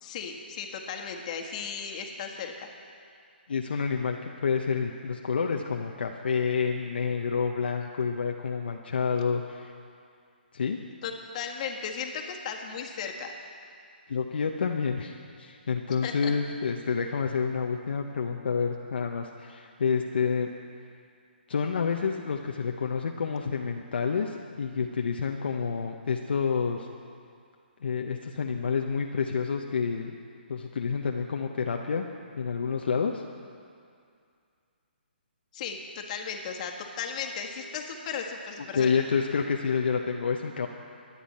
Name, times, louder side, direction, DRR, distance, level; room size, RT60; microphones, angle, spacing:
voice 1, 0.0-2.7 11.0-13.3 16.0-16.3 35.5-38.9, left 6 dB, 40° left, 2 dB, 1.7 m, -36 dB
voice 2, 3.5-9.7 10.5-10.8 14.1-20.5 21.5-26.9 27.8-30.1 30.5-32.0 32.4-33.2 38.7-40.7, left 5 dB, 65° left, 2 dB, 0.9 m, -29 dB
23.5 x 10.0 x 4.3 m, 2.3 s
hypercardioid pair, 145°, 6 cm